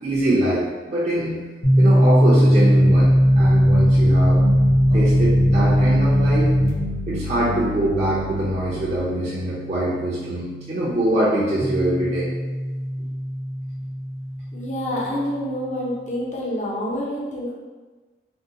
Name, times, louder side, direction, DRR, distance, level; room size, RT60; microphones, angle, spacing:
voice 1, 0.0-1.4 1.8-4.4 4.9-6.5 7.1-12.3 13.0-13.1, right 1 dB, 40° right, -8 dB, 0.5 m, -23 dB
sound 1, 1.6-15.2, equal, 75° left, 1.0 m, -20 dB
sound 2, 2.8-9.0, left 2 dB, 90° right, 0.5 m, -29 dB
voice 2, 14.5-17.5, equal, 40° left, -5 dB, 0.6 m, -27 dB
3.5 x 2.2 x 2.7 m, 1.3 s
head